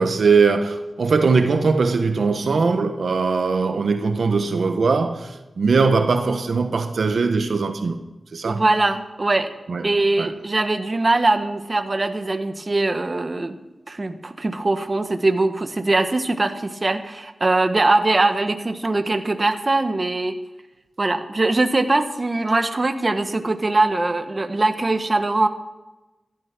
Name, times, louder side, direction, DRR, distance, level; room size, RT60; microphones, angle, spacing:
voice 1, 0.0-8.0 8.3-8.6 9.7-9.8 10.2-10.3, right 4 dB, 80° right, 7 dB, 1.2 m, -20 dB
voice 2, 8.4-9.5 9.8-13.6 13.9-20.4 21.0-25.5, right 2 dB, 40° right, 8 dB, 1.5 m, -21 dB
15.0 x 13.0 x 6.1 m, 1.1 s
cardioid pair, 50°, 0 cm